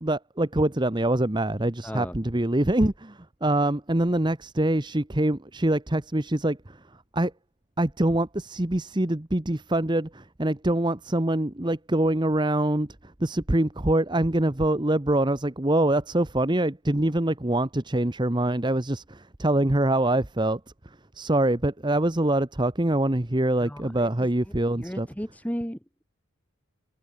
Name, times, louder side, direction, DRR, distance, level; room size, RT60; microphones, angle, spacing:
voice 1, 0.0-6.6 7.1-7.3 7.8-12.9 13.2-20.6 21.1-25.1, right 1 dB, 20° right, 1.0 m, -24 dB
voice 2, 1.8-2.2 23.6-24.1 24.7-26.0, equal, 5° left, 2.7 m, -35 dB
head